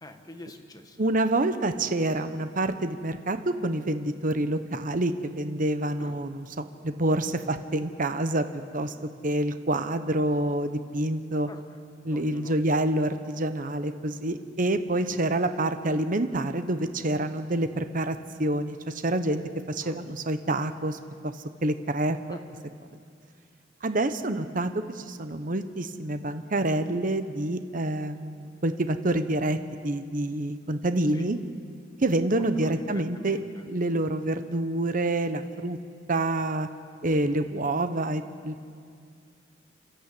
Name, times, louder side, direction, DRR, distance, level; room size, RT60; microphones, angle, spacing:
voice 1, 0.0-1.0 6.0-6.2 11.5-11.6 12.1-12.6 19.8-20.0 22.3-22.4 31.1-31.3 32.5-33.7 34.0-34.2, left 1 dB, 20° left, 5 dB, 1.6 m, -44 dB
voice 2, 1.0-8.5 8.7-8.9 9.2-11.5 12.0-19.4 19.7-21.0 21.2-21.3 21.6-22.4 23.8-31.4 32.0-33.4 33.7-35.8 36.1-36.7 37.0-38.7, right 1 dB, 45° right, 9 dB, 1.0 m, -27 dB
28.5 x 12.5 x 8.4 m, 2.3 s
head